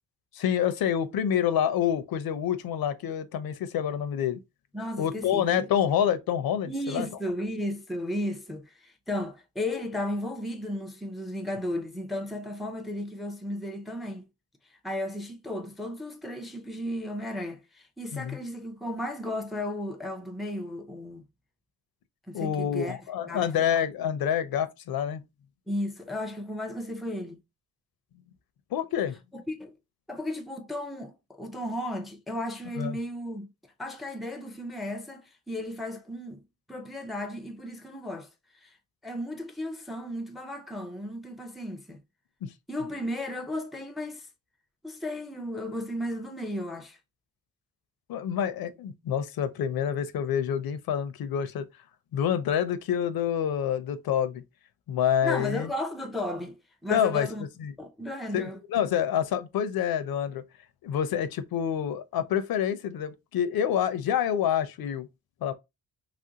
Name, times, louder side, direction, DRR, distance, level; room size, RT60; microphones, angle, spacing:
voice 1, 0.3-4.4 5.0-7.1 18.1-18.4 22.3-25.2 28.7-29.2 32.8-33.0 42.4-42.5 48.1-51.7 52.1-54.4 54.9-55.7 56.9-57.3 57.6-57.7 58.3-60.4 60.8-65.1 65.4-65.5, left 9 dB, 75° left, 0.5 m, -27 dB
voice 2, 4.7-5.7 6.7-14.2 14.8-21.2 22.3-23.0 23.3-23.7 25.7-27.4 29.3-29.7 30.1-33.5 33.8-36.4 36.7-38.3 38.6-38.7 39.0-42.0 42.7-44.3 44.8-47.0 55.2-57.4 57.8-58.6, left 1 dB, ahead, 0.4 m, -34 dB
3.0 x 2.5 x 2.7 m
cardioid pair, 120°, 36 cm